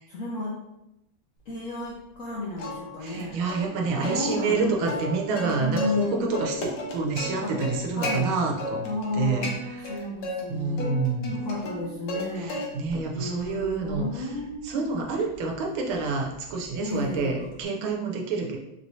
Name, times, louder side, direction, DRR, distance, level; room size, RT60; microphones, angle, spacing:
voice 1, 0.1-0.5 1.5-3.4 4.0-4.7 5.0-5.2 5.6-6.2 7.4-7.6 8.0-8.3 8.8-9.5 9.8-10.9 11.3-12.6 13.1-14.7 16.8-17.5, left 2 dB, 70° left, -5 dB, 0.7 m, -32 dB
Plucked string instrument, 2.6-3.2 3.5-3.6 4.0-6.1 6.3-8.2 8.6-9.1 9.4-10.4 10.8-12.2 12.5-13.0 13.4-17.6, left 1 dB, 90° left, 1.6 m, -34 dB
voice 2, 3.0-8.9 9.1-9.5 10.5-11.4 12.4-14.3 14.6-18.6, right 4 dB, 90° right, 1 dB, 1.5 m, -28 dB
4.4 x 3.1 x 2.7 m, 0.87 s
omnidirectional pair, 2.2 m